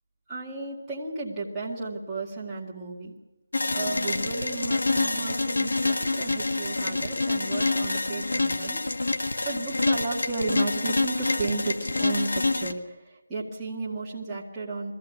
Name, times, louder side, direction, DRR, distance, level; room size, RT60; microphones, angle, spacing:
voice 1, 0.3-3.1 3.7-8.9 9.5-14.9, right 3 dB, 5° right, -10 dB, 2.0 m, -33 dB
sound 1, 3.5-12.7, left 2 dB, 85° left, 1.6 m, -27 dB
22.0 x 15.5 x 8.3 m, 1.1 s
figure-of-eight pair, 180°, 0 cm